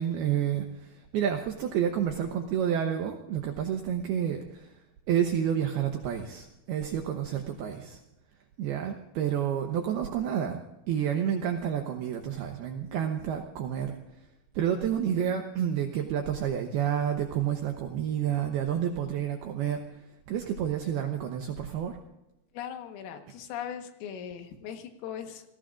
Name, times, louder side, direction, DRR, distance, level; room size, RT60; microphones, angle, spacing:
voice 1, 0.0-4.8 5.1-8.0 8.6-10.6 10.9-14.0 14.5-22.0, right 9 dB, 85° right, 4 dB, 2.2 m, -29 dB
voice 2, 22.5-25.4, left 9 dB, 85° left, 6 dB, 4.1 m, -39 dB
29.0 x 17.5 x 2.5 m, 0.93 s
omnidirectional pair, 5.8 m